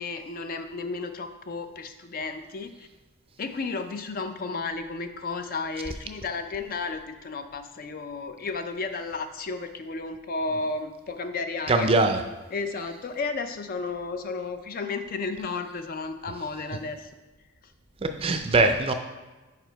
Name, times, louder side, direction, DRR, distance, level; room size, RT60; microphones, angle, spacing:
voice 1, 0.0-2.9 3.4-11.9 12.5-17.1, left 4 dB, 40° left, 8 dB, 0.4 m, -33 dB
voice 2, 11.7-12.2 18.2-18.9, right 3 dB, 25° right, 6 dB, 0.4 m, -21 dB
5.2 x 4.9 x 4.5 m, 1.2 s
head